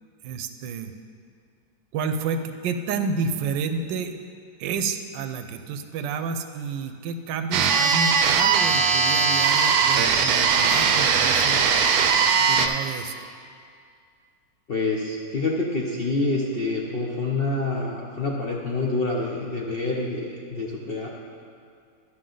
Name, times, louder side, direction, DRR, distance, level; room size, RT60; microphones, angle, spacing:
voice 1, 0.2-0.9 1.9-4.1 4.6-11.7 12.4-13.3, right 5 dB, 90° right, 9 dB, 1.3 m, -30 dB
sound 1, 7.5-12.7, right 6 dB, 70° right, 1.0 m, -20 dB
voice 2, 14.7-21.1, left 2 dB, 55° left, -3 dB, 0.6 m, -27 dB
12.0 x 6.2 x 3.8 m, 2.3 s
omnidirectional pair, 1.9 m